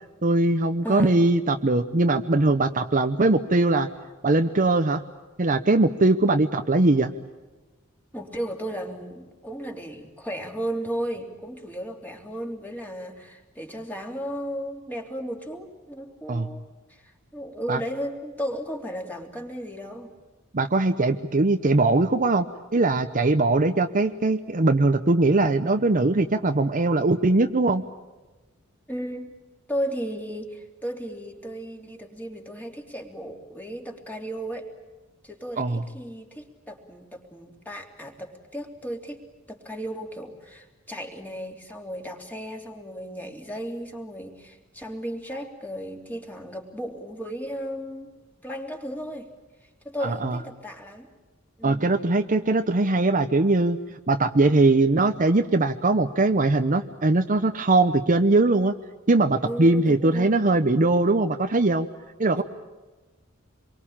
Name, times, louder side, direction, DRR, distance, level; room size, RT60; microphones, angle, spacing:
voice 1, 0.2-3.9 4.2-5.0 5.4-7.1 16.3-16.5 17.7-17.8 20.5-22.5 22.7-27.8 35.6-35.8 50.0-50.4 51.6-53.8 54.1-58.7 59.1-61.9 62.2-62.4, right 2 dB, 40° right, 8 dB, 0.9 m, -21 dB
voice 2, 0.8-1.2 8.1-16.6 16.9-17.0 17.3-20.1 28.9-29.3 29.7-34.6 35.2-39.2 39.5-48.1 48.4-49.3 49.8-51.1 51.6-51.9 59.4-60.3 62.3-62.4, equal, 10° left, 2 dB, 3.3 m, -35 dB
27.0 x 23.5 x 8.8 m, 1.2 s
head